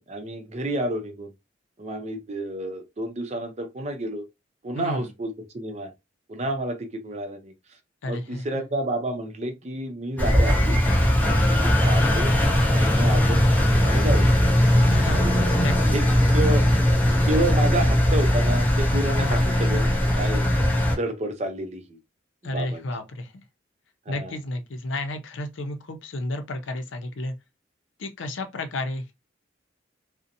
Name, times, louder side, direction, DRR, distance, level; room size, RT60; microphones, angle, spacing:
voice 1, 0.0-1.3 1.8-4.3 4.6-5.9 6.3-7.5 8.0-10.8 11.2-12.3 12.7-14.3 15.1-15.5 15.9-16.1 16.3-16.6 17.2-20.4 21.0-22.0 22.4-22.9 24.1-24.4, right 1 dB, 35° right, 0.5 m, -30 dB
voice 2, 4.8-5.1 8.0-8.4 14.9-15.2 15.6-16.1 19.2-19.5 22.4-23.4 24.1-27.3 28.0-29.1, left 1 dB, 80° left, 0.6 m, -32 dB
Engine, 10.2-21.0, equal, 10° left, 0.6 m, -20 dB
2.7 x 2.1 x 2.6 m
head